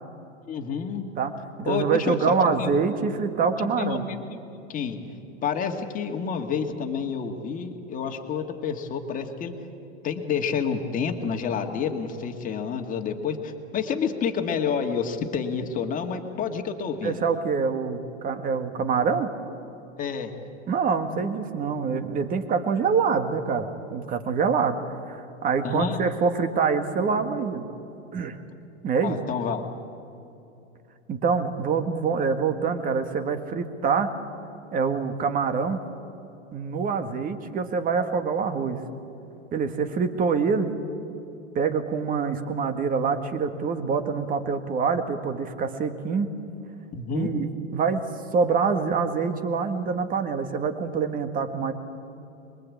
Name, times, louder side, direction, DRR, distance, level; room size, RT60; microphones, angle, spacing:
voice 1, 0.5-1.1 1.7-2.8 3.6-4.4 4.7-5.0 5.4-9.5 10.0-17.2 20.0-20.3 25.6-26.0 29.0-29.6 46.9-47.3, left 6 dB, 20° left, 4 dB, 2.1 m, -29 dB
voice 2, 1.6-4.0 17.0-19.3 20.7-24.8 25.1-27.6 28.1-28.4 28.8-29.2 31.1-34.1 34.7-35.8 36.5-38.8 39.5-40.7 41.5-46.3 47.1-48.0 48.3-51.7, right 5 dB, 25° right, 8 dB, 1.8 m, -25 dB
25.0 x 22.5 x 8.6 m, 2.8 s
hypercardioid pair, 140°, 36 cm